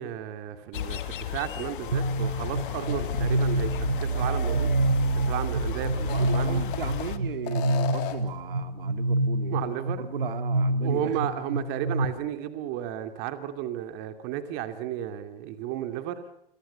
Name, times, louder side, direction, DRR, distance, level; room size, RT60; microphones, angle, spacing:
voice 1, 0.0-4.7 5.3-6.6 9.5-10.0 10.8-16.2, right 11 dB, 35° right, 8 dB, 2.6 m, -33 dB
sound 1, 0.7-7.2, left 11 dB, 60° left, 2.0 m, -35 dB
sound 2, 1.9-12.1, right 2 dB, 85° right, 4.7 m, -27 dB
sound 3, 2.6-3.6 4.0-4.1 5.9-7.1 7.4-8.4, left 12 dB, 45° left, 3.3 m, -36 dB
voice 2, 6.1-11.2, right 9 dB, 65° right, 8 dB, 2.4 m, -37 dB
28.5 x 23.0 x 7.0 m, 0.77 s
hypercardioid pair, 125°, 29 cm